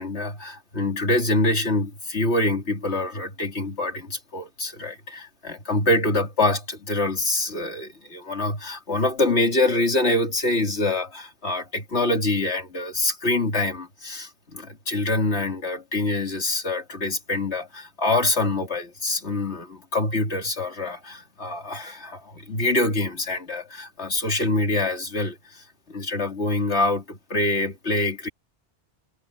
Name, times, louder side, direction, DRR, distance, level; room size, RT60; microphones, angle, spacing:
voice 1, 0.0-28.3, left 2 dB, 70° left, 3.5 m, -25 dB
omnidirectional pair, 1.2 m